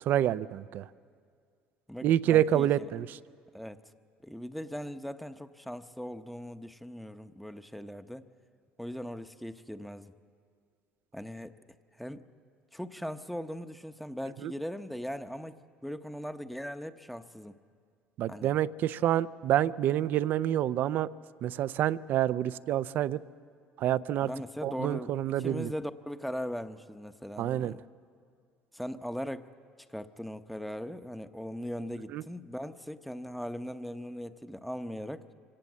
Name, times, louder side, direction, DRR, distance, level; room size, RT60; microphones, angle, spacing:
voice 1, 0.0-0.9 2.0-3.2 14.4-14.5 18.2-21.1 21.4-23.2 23.8-24.3 24.6-25.7 27.4-27.7 32.1-32.2, right 12 dB, 60° right, 16 dB, 0.5 m, -27 dB
voice 2, 1.9-2.9 3.5-3.8 4.2-8.3 8.8-10.1 11.1-11.6 12.0-12.2 12.7-17.6 18.3-18.5 24.2-27.8 28.7-29.5 29.9-35.3, equal, ahead, 10 dB, 0.8 m, -39 dB
25.0 x 17.5 x 7.5 m, 2.2 s
supercardioid pair, 90°, 4 cm